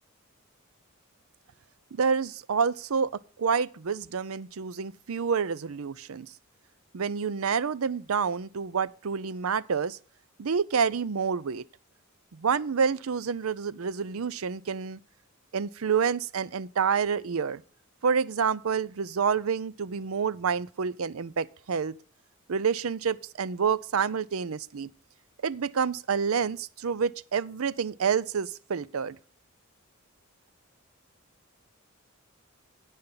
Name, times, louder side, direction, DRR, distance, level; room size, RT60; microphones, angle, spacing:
voice 1, 1.9-3.1 3.4-6.3 6.9-10.0 10.4-11.6 12.3-15.0 15.5-17.6 18.0-22.0 22.5-24.9 25.4-29.2, right 6 dB, 80° right, 0.6 m, -28 dB
16.5 x 5.6 x 3.9 m
head